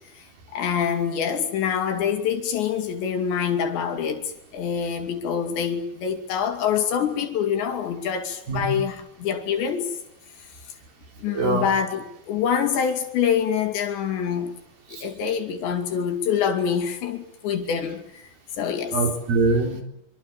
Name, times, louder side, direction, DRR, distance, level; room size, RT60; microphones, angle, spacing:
voice 1, 0.5-9.9 11.2-14.5 14.9-18.2 18.6-19.0, left 7 dB, 70° left, 4.6 m, -25 dB
voice 2, 11.3-11.7 14.9-15.1 18.9-19.8, right 3 dB, 50° right, 5.4 m, -23 dB
25.5 x 25.5 x 7.5 m
omnidirectional pair, 5.5 m